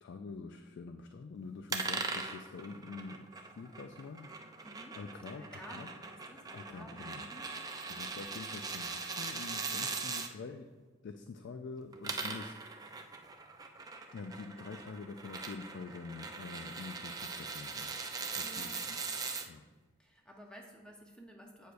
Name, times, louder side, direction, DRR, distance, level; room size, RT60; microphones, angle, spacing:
voice 1, 0.0-4.3 5.0-5.9 6.5-7.2 7.9-10.7 11.0-13.1 14.1-17.9 18.3-19.0 19.4-19.7, left 4 dB, 55° left, 7 dB, 0.3 m, -46 dB
sound 1, 1.7-10.3 11.8-19.5, right 4 dB, 15° right, 0.4 m, -41 dB
voice 2, 4.6-5.0 5.3-7.5 18.4-18.8 20.0-21.7, equal, 5° left, 1 dB, 0.8 m, -53 dB
8.0 x 6.4 x 2.5 m, 1.3 s
head